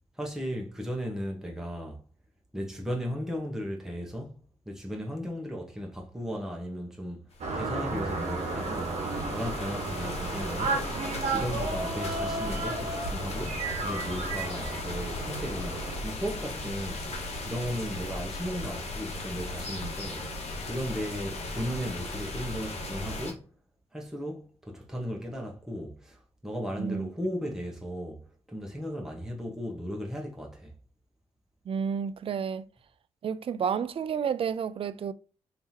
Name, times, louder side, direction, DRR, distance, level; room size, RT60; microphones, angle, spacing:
voice 1, 0.2-2.0 2.5-7.2 7.5-8.9 9.3-10.9 11.3-17.1 17.4-20.3 20.7-23.4 23.9-28.2 28.5-30.7, equal, 5° right, 1.2 m, -36 dB
sound 1, 7.3-23.3, left 2 dB, 55° left, 1.1 m, -37 dB
sound 2, 7.4-16.0, right 3 dB, 65° right, 1.1 m, -33 dB
voice 2, 26.8-27.1 31.7-32.6 33.2-35.1, right 7 dB, 50° right, 0.4 m, -30 dB
3.3 x 2.9 x 2.9 m
hypercardioid pair, 40°, 12 cm